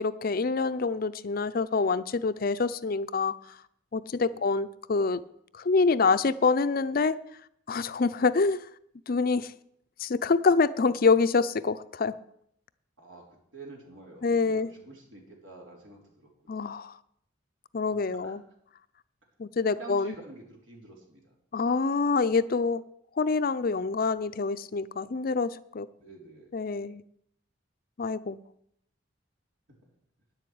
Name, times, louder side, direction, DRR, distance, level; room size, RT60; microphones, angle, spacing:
voice 1, 0.0-3.6 3.9-5.2 5.5-7.2 7.7-8.7 9.1-9.5 10.0-12.1 14.2-14.7 16.5-16.9 17.7-18.4 19.4-20.1 21.5-22.8 23.2-25.9 26.5-27.0 28.0-28.4, left 4 dB, 50° left, 0.5 m, -26 dB
voice 2, 13.0-16.3 16.6-16.7 17.9-18.4 19.7-21.3 26.0-26.5 29.7-29.9, right 2 dB, 80° right, 3.5 m, -48 dB
10.0 x 7.9 x 8.6 m
head